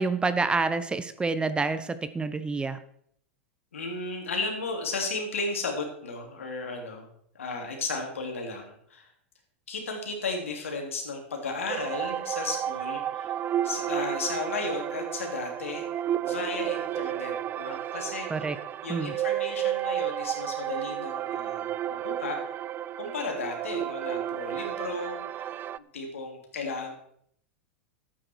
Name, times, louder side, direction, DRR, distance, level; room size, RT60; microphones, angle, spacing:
voice 1, 0.0-2.8 18.3-18.6 18.9-19.1, right 3 dB, 15° right, 12 dB, 0.8 m, -28 dB
voice 2, 3.7-7.1 7.3-9.1 9.7-13.3 13.6-15.9 16.2-18.3 18.8-21.7 22.0-22.4 23.0-25.6 25.9-26.9, left 3 dB, 85° left, 2 dB, 3.0 m, -34 dB
sound 1, 11.7-25.8, right 11 dB, 30° right, 0.4 m, -32 dB
12.0 x 8.8 x 4.6 m, 0.67 s
hypercardioid pair, 100°, 7 cm